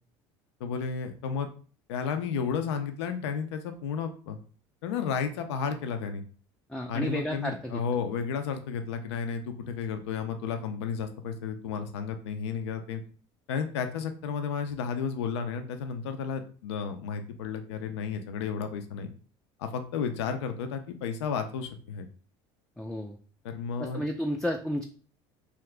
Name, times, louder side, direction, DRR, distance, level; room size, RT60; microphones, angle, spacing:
voice 1, 0.6-1.5 1.9-4.4 4.8-6.2 6.9-13.0 13.5-19.1 19.6-22.1 23.4-24.0, left 6 dB, 90° left, 7 dB, 0.4 m, -32 dB
voice 2, 6.7-7.8 22.8-23.2 23.8-24.8, equal, 5° left, 3 dB, 0.3 m, -32 dB
2.8 x 2.4 x 3.2 m, 0.41 s
supercardioid pair, 90°, 14 cm